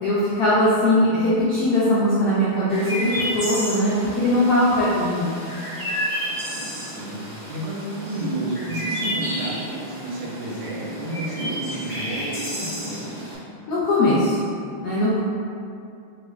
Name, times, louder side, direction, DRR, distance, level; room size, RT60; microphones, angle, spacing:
voice 1, 0.0-5.3 13.7-14.4 14.8-15.2, left 1 dB, 90° left, -9 dB, 0.8 m, -20 dB
Chirp tweet, 2.7-13.4, equal, 25° left, 0.7 m, -31 dB
voice 2, 6.9-13.1, right 1 dB, 90° right, -4 dB, 1.5 m, -31 dB
3.8 x 2.3 x 3.1 m, 2.5 s
omnidirectional pair, 2.4 m